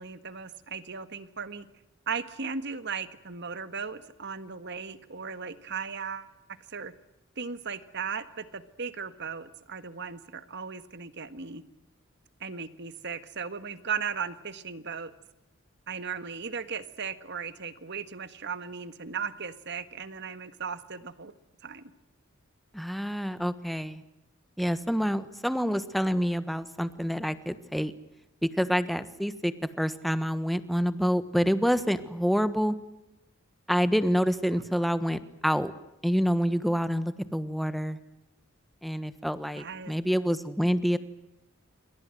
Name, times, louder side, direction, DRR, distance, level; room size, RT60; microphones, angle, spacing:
voice 1, 0.0-1.7 2.1-6.3 6.7-6.9 7.4-11.6 12.4-15.1 15.9-21.3 21.6-21.9 34.8-34.9 39.5-39.9, right 6 dB, 55° right, 11 dB, 1.7 m, -37 dB
voice 2, 22.7-24.0 24.6-27.9 28.4-32.7 33.7-35.7 36.0-38.0 38.8-41.0, equal, ahead, 12 dB, 1.3 m, -27 dB
28.0 x 24.0 x 7.8 m, 0.92 s
head